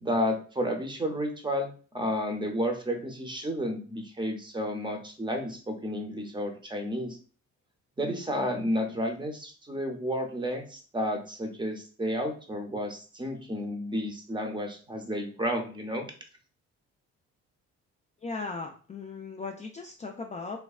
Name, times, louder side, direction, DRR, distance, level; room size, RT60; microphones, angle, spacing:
voice 1, 0.0-7.2 8.0-16.1, equal, 15° right, 3 dB, 0.6 m, -31 dB
voice 2, 18.2-20.6, left 4 dB, 25° left, 2 dB, 0.3 m, -37 dB
3.2 x 2.2 x 2.3 m, 0.40 s
cardioid pair, 90°, 30 cm